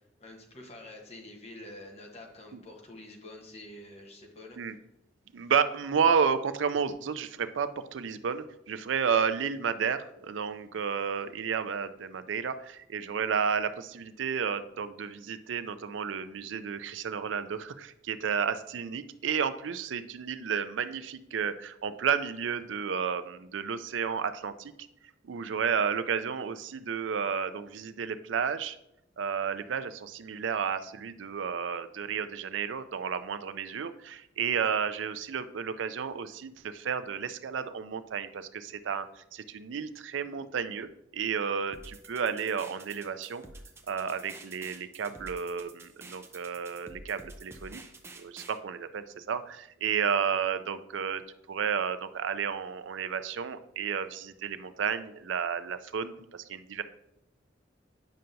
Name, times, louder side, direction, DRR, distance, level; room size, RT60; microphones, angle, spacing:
voice 1, 0.2-4.6, left 1 dB, 35° left, 1 dB, 1.1 m, -47 dB
voice 2, 5.3-24.7 25.2-28.8 29.2-43.4 43.9-47.8 48.1-51.2 51.5-56.8, right 6 dB, 90° right, 12 dB, 0.4 m, -32 dB
sound 1, 41.7-48.6, right 2 dB, 15° right, 0.6 m, -49 dB
9.0 x 5.6 x 2.6 m, 0.81 s
head